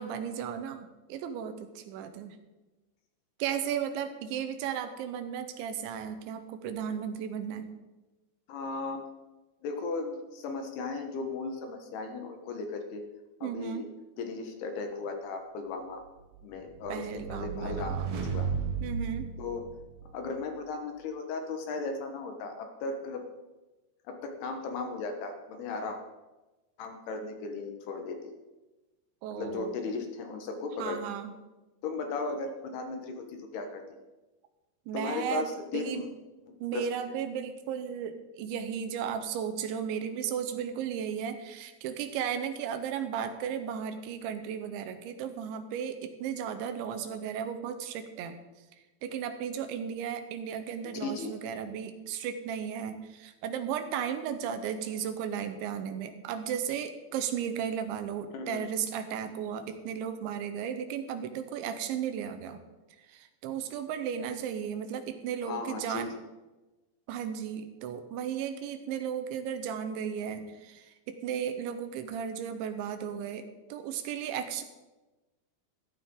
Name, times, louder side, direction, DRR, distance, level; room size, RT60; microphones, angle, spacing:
voice 1, 0.0-2.4 3.4-7.7 13.4-13.9 16.9-18.1 18.8-19.3 29.2-29.8 30.8-31.3 34.9-36.0 36.6-48.4 49.0-62.6 63.1-66.1 67.1-74.6, right 8 dB, 85° right, 9 dB, 3.3 m, -35 dB
voice 2, 8.5-9.0 9.6-13.0 13.4-13.9 14.2-16.0 16.4-18.0 18.3-18.5 19.4-19.7 20.1-23.2 24.1-26.0 26.8-28.2 29.3-31.0 31.8-33.8 34.9-36.1 36.7-37.2 50.8-51.3 58.3-58.6 65.5-66.1, left 4 dB, 70° left, 5 dB, 3.1 m, -36 dB
sound 1, 16.3-20.2, right 6 dB, 60° right, 3.0 m, -34 dB
14.5 x 13.5 x 3.8 m, 1.1 s
omnidirectional pair, 5.2 m